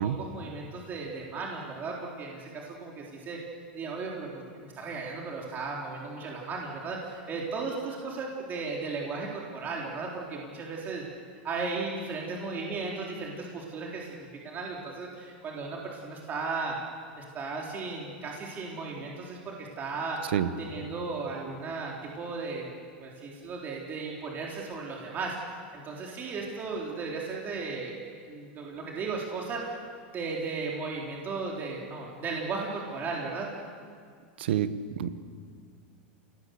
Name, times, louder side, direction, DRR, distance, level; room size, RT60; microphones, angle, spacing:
voice 1, 0.0-3.4 3.7-11.0 11.4-16.8 17.2-20.2 20.6-22.7 23.0-28.0 28.3-29.8 30.1-33.5, right 4 dB, 30° right, -2 dB, 4.0 m, -36 dB
voice 2, 34.4-34.7 35.0-35.2, right 10 dB, 80° right, 12 dB, 1.3 m, -27 dB
28.0 x 19.0 x 8.1 m, 2.1 s
hypercardioid pair, 120°, 6 cm